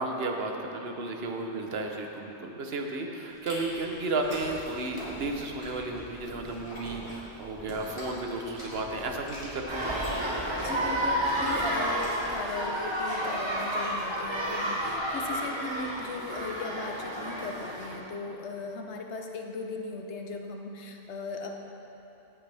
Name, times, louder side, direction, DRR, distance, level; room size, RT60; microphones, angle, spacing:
voice 1, 0.0-9.9, right 2 dB, 60° right, 2 dB, 1.1 m, -33 dB
Chewing mastication, 3.3-12.5, equal, 25° left, 2.6 m, -44 dB
sound 1, 9.7-18.0, right 1 dB, 25° right, 1.0 m, -31 dB
voice 2, 10.5-21.7, left 4 dB, 75° left, 3 dB, 1.1 m, -38 dB
17.5 x 6.0 x 3.4 m, 3.0 s
omnidirectional pair, 1.2 m